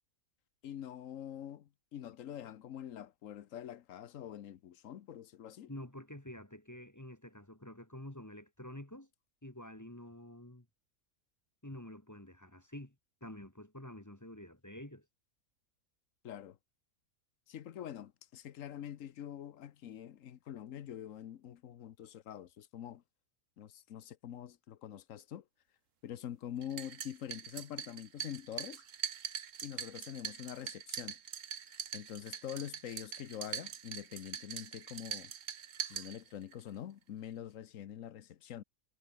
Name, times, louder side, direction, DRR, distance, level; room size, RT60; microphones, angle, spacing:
voice 1, 0.6-5.7 16.2-16.6 17.5-23.0 23.6-25.4 26.0-28.8 29.6-31.2 31.7-35.3 35.8-38.6, left 10 dB, 65° left, 1.2 m, -45 dB
voice 2, 5.7-9.1 9.4-10.7 11.6-13.0 13.2-15.1, left 1 dB, 15° left, 1.6 m, -48 dB
sound 1, 26.6-36.6, right 8 dB, 65° right, 1.4 m, -43 dB
omnidirectional pair, 1.5 m